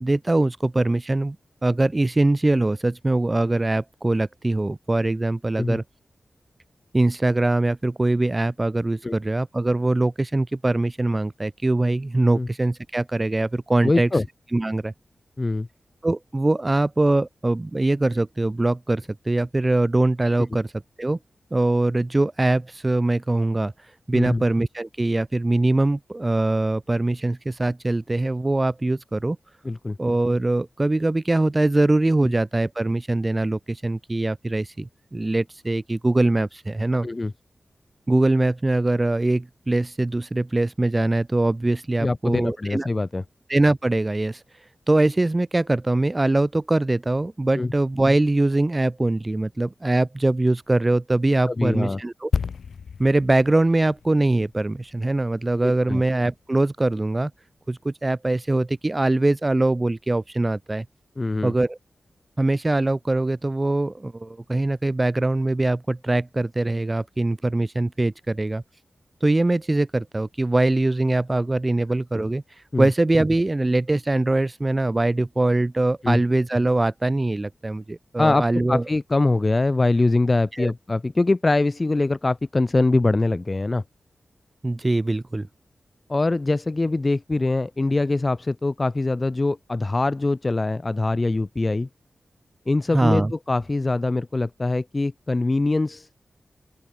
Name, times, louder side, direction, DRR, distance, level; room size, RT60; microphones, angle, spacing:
voice 1, 0.0-1.4 1.6-5.8 6.9-14.1 14.5-14.9 16.0-20.7 21.0-21.2 21.5-29.4 30.0-37.1 38.1-42.9 43.5-44.4 44.9-52.3 53.0-57.3 57.7-60.8 61.4-61.8 62.4-68.6 69.2-78.8 80.5-80.7 84.6-85.5 92.9-93.3, right 2 dB, 30° right, 1.1 m, -22 dB
voice 2, 13.8-14.2 15.4-15.7 24.1-24.4 29.6-30.0 37.0-37.3 42.0-43.2 47.6-47.7 51.5-52.0 55.6-56.0 61.2-61.5 72.7-72.9 76.0-76.2 78.2-83.8 86.1-91.9 92.7-96.2, left 2 dB, 35° left, 0.6 m, -23 dB
sound 1, 52.3-56.0 56.2-56.4, left 6 dB, 80° left, 0.5 m, -32 dB
open air
cardioid pair, 55°, 0 cm